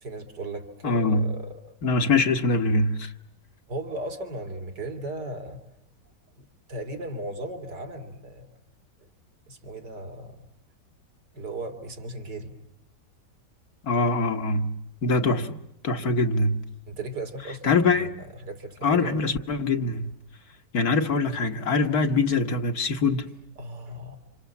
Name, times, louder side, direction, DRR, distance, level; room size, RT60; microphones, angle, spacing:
voice 1, 0.0-1.7 3.7-5.6 6.4-8.5 9.5-10.4 11.3-12.5 16.0-16.2 16.9-18.1 18.4-19.2 23.6-24.2, right 2 dB, 75° right, 3.2 m, -36 dB
voice 2, 0.8-1.3 1.8-3.1 13.8-15.5 15.8-16.6 17.6-18.1 18.8-20.1 20.7-23.3, left 3 dB, 60° left, 1.8 m, -23 dB
29.5 x 27.0 x 7.2 m
omnidirectional pair, 1.8 m